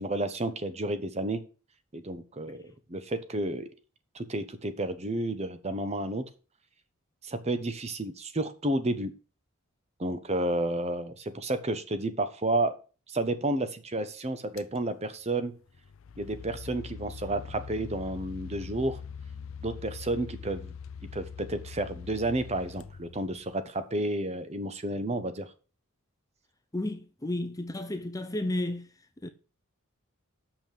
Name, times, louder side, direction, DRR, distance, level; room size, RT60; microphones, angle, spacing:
voice 1, 0.0-1.4 1.9-2.6 2.9-3.7 4.1-6.2 7.2-9.1 10.0-12.8 13.1-15.5 16.2-19.0 19.6-20.7 21.1-25.5, right 2 dB, 30° right, 0.9 m, -31 dB
sound 1, 14.6-14.8 15.7-23.7, left 6 dB, 60° left, 0.5 m, -43 dB
voice 2, 26.7-28.9 29.2-29.3, left 1 dB, 15° left, 0.7 m, -32 dB
6.9 x 5.9 x 7.5 m
head